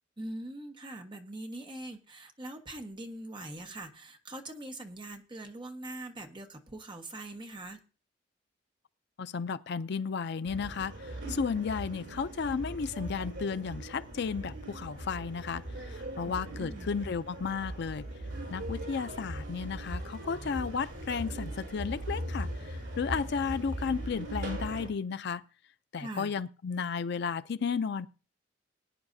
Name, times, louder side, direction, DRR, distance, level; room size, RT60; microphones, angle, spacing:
voice 1, 0.2-7.8 16.2-16.3 16.6-16.9 26.0-26.3, right 1 dB, 25° right, 1.3 m, -42 dB
voice 2, 9.2-18.1 18.5-25.4 25.9-28.1, left 5 dB, 60° left, 0.5 m, -33 dB
sound 1, 10.5-24.9, right 1 dB, 70° right, 7.3 m, -39 dB
20.5 x 9.7 x 2.7 m
head